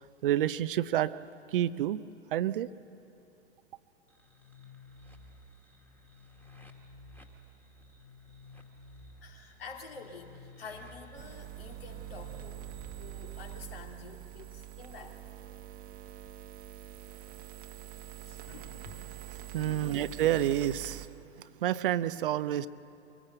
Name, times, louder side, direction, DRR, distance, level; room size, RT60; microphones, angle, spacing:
voice 1, 0.2-1.1 1.5-2.0 2.3-2.7 19.5-21.1 21.6-22.7, right 12 dB, 55° right, 15 dB, 0.6 m, -28 dB
sound 1, 4.1-13.6, left 2 dB, 5° left, 1.8 m, -54 dB
voice 2, 9.2-15.4 16.0-16.1 18.2-19.1 19.4-19.9, left 4 dB, 60° left, 3 dB, 2.9 m, -49 dB
sound 2, 11.2-21.1, right 14 dB, 25° right, 1.2 m, -45 dB
24.0 x 18.5 x 7.9 m, 2.7 s
figure-of-eight pair, 100°, 32 cm